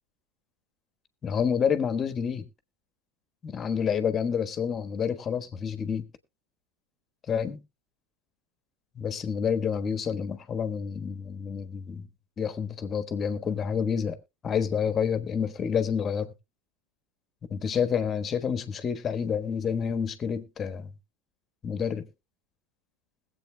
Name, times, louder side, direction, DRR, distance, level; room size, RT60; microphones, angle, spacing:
voice 1, 1.2-2.4 3.4-6.1 7.3-7.6 8.9-12.0 12.4-14.2 14.4-16.3 17.5-20.9 21.6-22.1, left 7 dB, 30° left, 1.3 m, -28 dB
21.0 x 8.1 x 2.2 m
hypercardioid pair, 85°, 0 cm